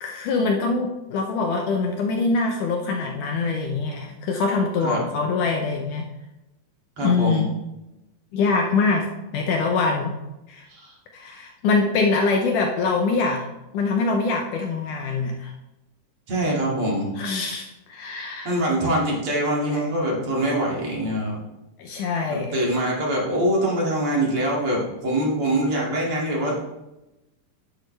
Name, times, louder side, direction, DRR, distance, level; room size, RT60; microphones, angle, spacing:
voice 1, 0.0-6.1 7.0-7.5 8.3-9.1 9.3-10.2 10.5-10.7 11.1-13.4 13.7-15.5 17.2-18.6 19.7-19.9 21.8-22.6, left 4 dB, 85° left, 2 dB, 1.8 m, -24 dB
voice 2, 7.0-7.4 10.7-10.9 16.3-17.1 18.4-21.4 22.3-26.6, right 1 dB, 40° right, -4 dB, 2.7 m, -24 dB
9.7 x 8.8 x 3.3 m, 0.96 s
omnidirectional pair, 4.7 m